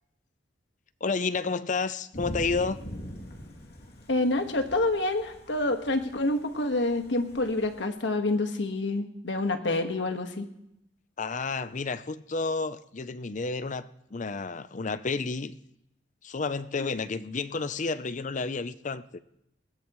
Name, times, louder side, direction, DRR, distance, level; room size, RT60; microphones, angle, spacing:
voice 1, 1.0-2.8 11.2-15.6 16.2-19.2, left 4 dB, 45° left, 0.6 m, -31 dB
Thunder / Rain, 2.1-7.9, equal, 65° left, 2.7 m, -43 dB
voice 2, 4.1-10.5 16.8-16.9, left 2 dB, 90° left, 1.6 m, -27 dB
20.5 x 17.0 x 3.1 m
head